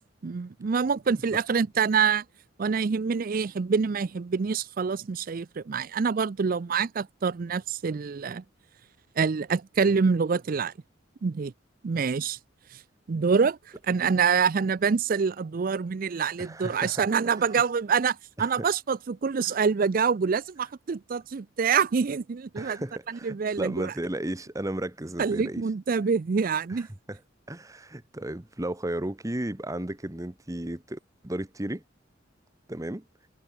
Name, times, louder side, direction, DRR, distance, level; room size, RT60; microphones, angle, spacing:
voice 1, 0.2-2.2 2.6-8.4 9.2-10.7 11.2-11.5 11.8-12.4 13.1-13.6 13.9-22.8 23.1-23.9 25.2-26.9, right 5 dB, 45° right, 0.4 m, -26 dB
voice 2, 16.4-17.1 17.4-17.5 18.4-18.7 19.4-19.5 22.5-25.6 26.7-27.2 27.5-31.8 32.7-33.0, right 1 dB, 15° right, 1.1 m, -34 dB
head